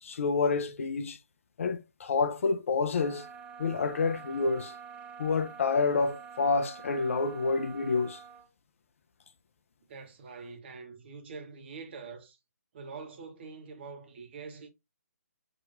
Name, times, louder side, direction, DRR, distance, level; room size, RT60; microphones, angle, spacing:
voice 1, 0.0-1.2 1.6-3.3 3.6-4.7 5.2-8.2, left 4 dB, 50° left, 0.6 m, -28 dB
sound 1, 2.9-8.5, right 7 dB, 10° right, 0.6 m, -47 dB
voice 2, 9.9-12.4 12.7-14.7, right 4 dB, 40° right, 1.2 m, -45 dB
5.0 x 2.9 x 2.6 m
figure-of-eight pair, 145°, 9 cm